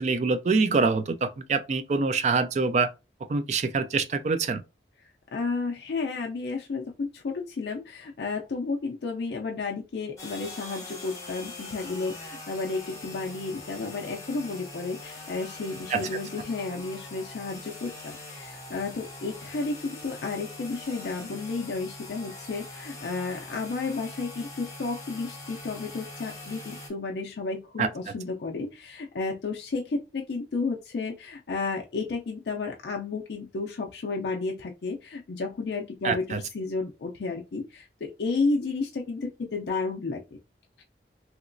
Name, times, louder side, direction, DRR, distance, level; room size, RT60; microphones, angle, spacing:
voice 1, 0.0-2.9 3.3-4.6 15.9-16.0 27.8-27.9 36.0-36.4, right 4 dB, 40° right, 0.3 m, -25 dB
voice 2, 5.3-40.4, left 3 dB, 65° left, 0.4 m, -32 dB
sound 1, 10.2-26.9, left 2 dB, 15° left, 0.8 m, -42 dB
2.9 x 2.9 x 2.5 m
head